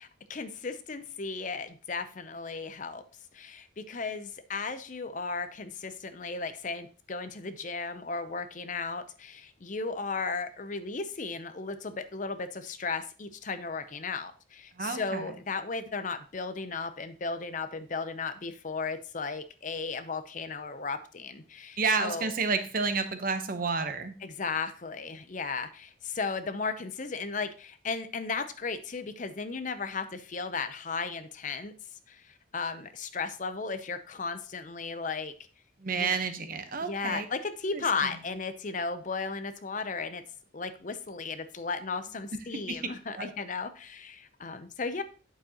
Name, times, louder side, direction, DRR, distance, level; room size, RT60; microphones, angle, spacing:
voice 1, 0.0-3.0 3.3-22.3 24.2-31.7 32.1-35.3 36.0-36.2 36.8-40.2 40.5-45.0, left 4 dB, 40° left, 11 dB, 0.6 m, -35 dB
voice 2, 14.8-15.3 21.8-24.1 35.8-37.3 37.7-38.1 42.7-42.8 43.1-43.3, right 4 dB, 45° right, 8 dB, 0.8 m, -30 dB
8.9 x 7.0 x 2.9 m, 0.37 s
head